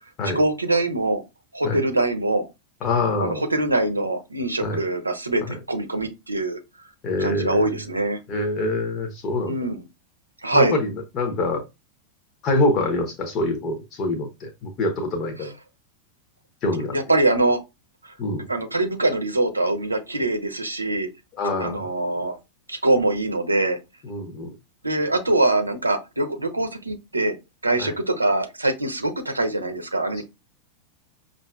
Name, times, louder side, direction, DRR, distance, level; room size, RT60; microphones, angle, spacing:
voice 1, 0.3-1.2 1.5-2.5 3.2-6.6 7.2-8.2 9.5-9.8 10.4-10.8 15.4-15.5 16.9-17.6 18.0-18.1 18.5-21.1 21.6-22.4 22.7-23.8 24.8-27.4 27.6-30.2, right 2 dB, 80° right, 0.7 m, -23 dB
voice 2, 2.8-3.5 4.6-4.8 5.4-5.6 7.0-7.7 8.3-9.6 10.5-11.6 12.4-15.5 16.6-17.0 18.2-18.5 21.3-21.9 24.0-24.5 27.8-27.9, left 2 dB, 35° left, 0.8 m, -25 dB
5.4 x 2.5 x 2.3 m
figure-of-eight pair, 90°, 0 cm